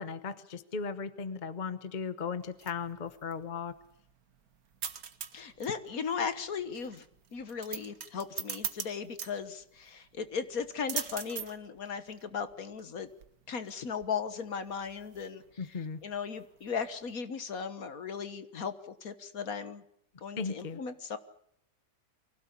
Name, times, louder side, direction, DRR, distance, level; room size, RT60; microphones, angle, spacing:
voice 1, 0.0-3.7 15.6-16.0 20.4-20.8, left 5 dB, 35° left, 13 dB, 0.9 m, -37 dB
sound 1, 2.3-17.1, right 8 dB, 60° right, 1.6 m, -44 dB
voice 2, 5.3-7.1 7.3-13.1 13.5-15.4 15.7-19.8 20.2-21.2, left 6 dB, 55° left, 11 dB, 1.7 m, -37 dB
24.0 x 16.5 x 8.5 m, 0.72 s
omnidirectional pair, 1.8 m